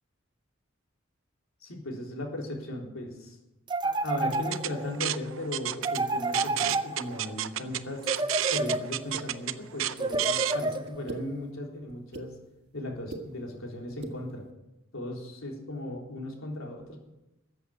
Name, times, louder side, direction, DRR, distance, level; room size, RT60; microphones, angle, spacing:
voice 1, 1.6-3.4 3.8-8.1 8.5-12.3 12.7-14.5 14.9-17.0, left 1 dB, 90° left, 0 dB, 3.7 m, -37 dB
sound 1, 3.7-5.0 5.8-7.3 8.0-9.2 10.0-11.2, right 2 dB, 25° right, 0.6 m, -30 dB
sound 2, 4.3-10.6, right 12 dB, 80° right, 0.6 m, -32 dB
sound 3, 9.1-9.2 10.1-10.3 10.9-11.2 11.9-12.3 12.9-13.2 13.9-14.1, right 3 dB, 55° right, 1.6 m, -39 dB
14.5 x 7.9 x 10.0 m, 0.97 s
head